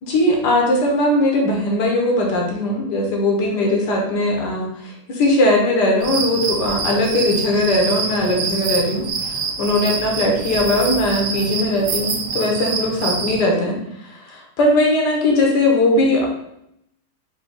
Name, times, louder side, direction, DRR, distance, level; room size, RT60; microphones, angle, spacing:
voice 1, 0.0-9.3 9.6-13.8 14.0-16.3, left 1 dB, 85° left, -1 dB, 1.6 m, -19 dB
sound 1, 6.0-13.4, right 4 dB, 80° right, 1.3 m, -26 dB
4.9 x 2.8 x 3.8 m, 0.77 s
omnidirectional pair, 1.8 m